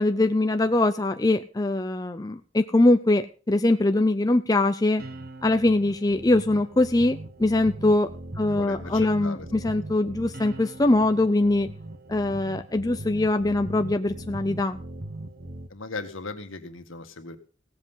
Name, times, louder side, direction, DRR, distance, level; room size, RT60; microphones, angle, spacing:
voice 1, 0.0-5.0 5.4-8.1 8.4-11.7 12.1-14.8, left 2 dB, 20° left, 7 dB, 0.5 m, -22 dB
sound 1, 5.0-15.7, right 2 dB, 45° right, 1.1 m, -40 dB
voice 2, 8.5-9.8 15.7-17.4, left 3 dB, 70° left, 7 dB, 1.7 m, -38 dB
17.0 x 7.8 x 5.6 m, 0.38 s
head